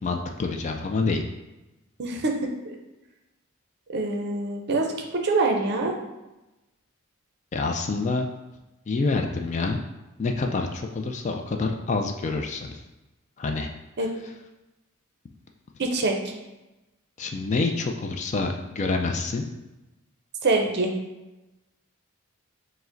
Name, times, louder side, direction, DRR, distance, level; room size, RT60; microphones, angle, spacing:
voice 1, 0.0-1.2 7.5-8.3 8.9-9.8 10.2-12.8 13.4-13.7 17.2-19.4, left 3 dB, 35° left, 4 dB, 0.3 m, -27 dB
voice 2, 2.0-2.3 2.6-2.7 3.9-5.9 14.0-14.1 15.8-16.2 20.4-20.9, right 3 dB, 50° right, 3 dB, 0.5 m, -25 dB
4.7 x 2.1 x 3.8 m, 1.0 s
head